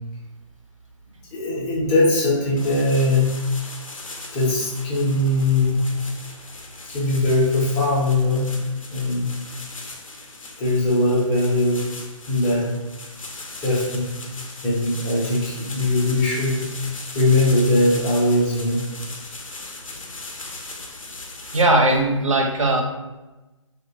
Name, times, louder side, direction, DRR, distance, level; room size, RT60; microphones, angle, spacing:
voice 1, 1.3-3.3 4.3-5.8 6.9-8.5 8.9-9.4 10.6-11.9 12.3-12.7 13.6-14.1 14.6-16.6 17.1-18.9, left 2 dB, 15° left, -5 dB, 0.4 m, -20 dB
sound 1, 2.6-21.6, left 3 dB, 85° left, 0.5 m, -38 dB
voice 2, 21.5-22.8, right 2 dB, 75° right, 2 dB, 0.6 m, -18 dB
2.8 x 2.1 x 2.6 m, 1.1 s
figure-of-eight pair, 145°, 17 cm